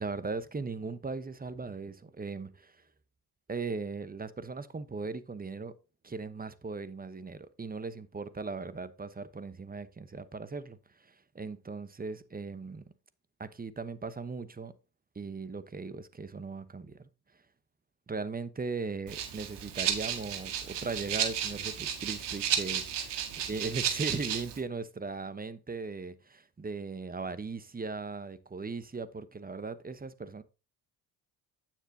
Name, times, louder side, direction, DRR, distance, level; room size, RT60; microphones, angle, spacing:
voice 1, 0.0-2.8 3.5-5.8 6.0-12.8 13.4-14.7 15.1-17.1 18.1-22.8 23.5-30.4, right 4 dB, 20° right, 1.0 m, -38 dB
Rattle (instrument), 19.1-24.6, right 9 dB, 70° right, 2.0 m, -33 dB
8.9 x 7.4 x 2.8 m
supercardioid pair, 65°, 43 cm